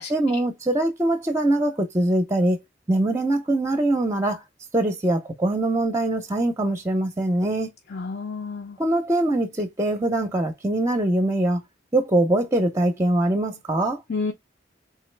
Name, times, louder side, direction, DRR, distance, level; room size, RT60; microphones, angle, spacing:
voice 1, 0.1-2.6 2.9-4.4 4.7-7.7 8.8-11.6 11.9-14.0, right 1 dB, 15° right, 0.6 m, -23 dB
voice 2, 7.9-8.8 14.1-14.3, left 4 dB, 60° left, 0.6 m, -30 dB
3.7 x 3.0 x 3.2 m
head